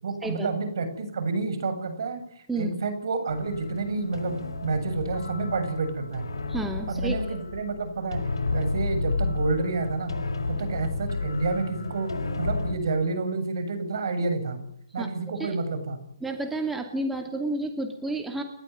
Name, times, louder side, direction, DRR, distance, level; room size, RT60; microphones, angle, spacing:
voice 1, 0.0-6.2 6.9-8.2 8.5-10.1 10.5-12.1 12.4-14.6 14.9-16.0, right 3 dB, 60° right, 9 dB, 7.7 m, -29 dB
sound 1, 3.3-12.8, left 3 dB, 75° left, 5.4 m, -31 dB
voice 2, 6.5-7.2 15.0-15.6 16.2-18.4, right 2 dB, 5° right, 4 dB, 2.5 m, -31 dB
30.0 x 14.0 x 9.5 m, 0.72 s
hypercardioid pair, 145°, 2 cm